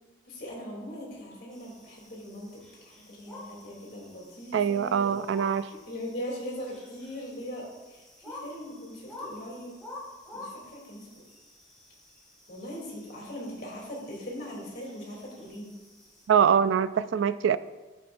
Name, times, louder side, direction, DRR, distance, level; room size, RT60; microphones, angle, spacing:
voice 1, 0.3-5.2 5.7-9.7 10.3-11.0 12.5-15.7, equal, 50° left, 3.1 m, -40 dB
sound 1, 1.5-16.3, left 2 dB, 5° left, 2.4 m, -49 dB
voice 2, 4.5-5.7 16.3-17.6, right 7 dB, 75° right, 0.3 m, -23 dB
13.5 x 7.8 x 2.6 m
head